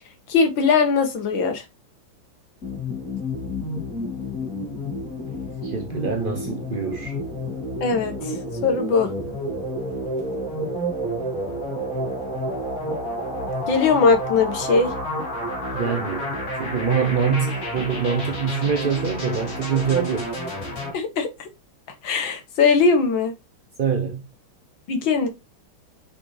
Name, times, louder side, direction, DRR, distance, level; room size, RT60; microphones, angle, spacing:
voice 1, 0.3-1.6 7.8-8.3 8.6-9.1 13.7-14.9 20.9-21.5 22.0-23.3 24.9-25.3, left 5 dB, 70° left, 2.2 m, -20 dB
sound 1, 2.6-20.9, equal, 40° left, 2.6 m, -30 dB
voice 2, 5.6-7.2 15.7-20.3 23.8-24.2, right 6 dB, 60° right, 0.5 m, -25 dB
6.1 x 5.9 x 3.3 m
omnidirectional pair, 2.2 m